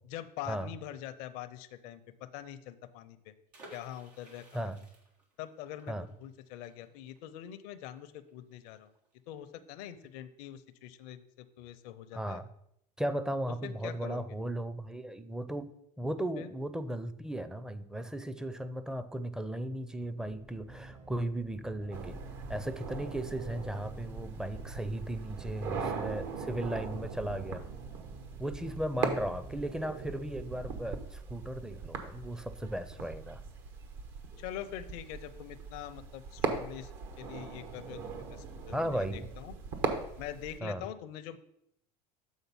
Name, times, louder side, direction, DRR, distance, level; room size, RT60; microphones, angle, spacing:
voice 1, 0.1-3.3 3.7-4.7 5.4-8.9 9.3-12.4 13.6-14.2 16.4-16.5 34.4-36.9 37.2-39.5 40.2-41.4, left 11 dB, 65° left, 12 dB, 0.6 m, -44 dB
sound 1, 3.5-9.1 9.4-9.5 9.8-10.1, right 2 dB, 85° right, 1.7 m, -57 dB
voice 2, 12.1-12.5 13.0-15.7 16.0-22.2 22.5-27.6 28.4-33.4 38.7-39.3 40.6-40.8, right 1 dB, 5° right, 12 dB, 0.5 m, -36 dB
sound 2, 20.2-31.0, right 3 dB, 40° right, 1.0 m, -50 dB
sound 3, 21.9-40.6, right 5 dB, 60° right, 1.2 m, -40 dB
7.3 x 3.9 x 5.4 m, 0.75 s
hypercardioid pair, 75°, 20 cm